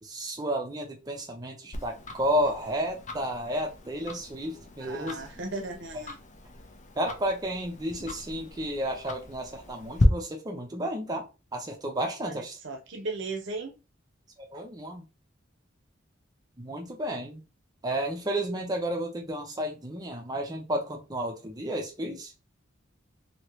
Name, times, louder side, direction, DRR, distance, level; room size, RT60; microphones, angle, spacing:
voice 1, 0.0-5.2 7.0-12.5 14.5-15.0 16.6-17.4 17.8-22.3, equal, 20° right, 0.6 m, -32 dB
Tick-tock, 1.7-10.0, left 3 dB, 40° left, 0.6 m, -37 dB
voice 2, 4.5-6.2 12.2-13.7, right 3 dB, 65° right, 0.8 m, -37 dB
3.0 x 2.9 x 3.0 m
head